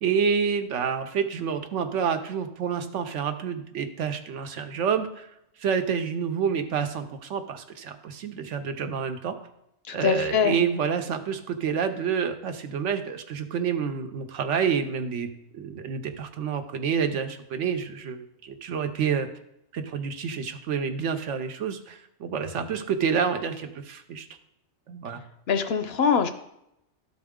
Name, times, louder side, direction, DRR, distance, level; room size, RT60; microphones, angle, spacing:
voice 1, 0.0-5.3 5.6-9.3 9.9-15.3 15.5-19.3 19.7-24.3 24.9-25.2, right 7 dB, 80° right, 7 dB, 1.0 m, -28 dB
voice 2, 9.9-10.6 25.5-26.3, left 6 dB, 65° left, 9 dB, 0.8 m, -23 dB
12.0 x 4.1 x 3.6 m, 0.81 s
omnidirectional pair, 1.2 m